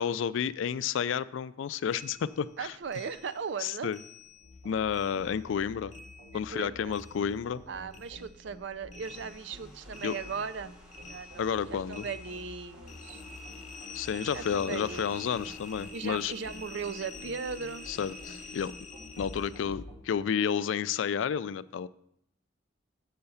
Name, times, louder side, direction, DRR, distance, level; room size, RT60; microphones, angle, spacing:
voice 1, 0.0-2.8 3.6-4.0 4.6-5.9 6.3-7.6 10.0-10.2 11.4-12.1 13.9-16.3 17.9-18.7 19.2-21.9, left 7 dB, 80° left, 17 dB, 0.3 m, -31 dB
sound 1, 1.9-4.6 4.9-7.6 7.9-19.7, left 3 dB, 35° left, 0.6 m, -48 dB
voice 2, 2.6-3.9 6.3-7.0 7.7-10.7 11.1-13.2 14.3-15.1 15.9-17.9, right 5 dB, 70° right, 14 dB, 0.4 m, -38 dB
sound 2, 4.4-20.0, left 1 dB, 85° right, 2.3 m, -50 dB
sound 3, 9.0-15.9, equal, 5° right, 1.2 m, -57 dB
6.6 x 5.6 x 7.0 m, 0.76 s
head